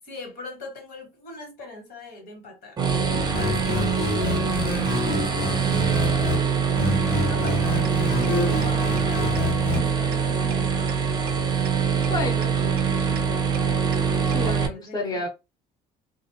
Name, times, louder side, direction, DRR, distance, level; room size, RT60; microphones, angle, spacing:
voice 1, 0.0-2.9 3.2-4.4 5.3-6.9 7.3-8.1 8.5-10.9 14.4-15.3, left 2 dB, 70° left, 1.5 m, -41 dB
sound 1, 2.8-14.7, right 6 dB, 25° right, 0.6 m, -24 dB
sound 2, 3.3-6.4 6.8-9.8, left 3 dB, 90° left, 1.2 m, -28 dB
sound 3, 7.5-7.6 7.8-7.9 8.2-8.3 8.6-8.7 9.0-9.1 9.4-9.5 9.7-9.8 10.1-10.2 10.5-10.6 10.9-11.0 11.3-11.4 11.7-11.8 12.0-12.1 12.4-12.5 12.8-12.9 13.2-13.3 13.5-13.6 13.9-14.0 14.3-14.4, right 9 dB, 70° right, 0.4 m, -37 dB
voice 2, 12.0-13.3 14.3-15.3, left 2 dB, 25° left, 0.7 m, -31 dB
2.5 x 2.0 x 2.7 m
cardioid pair, 110°, 17 cm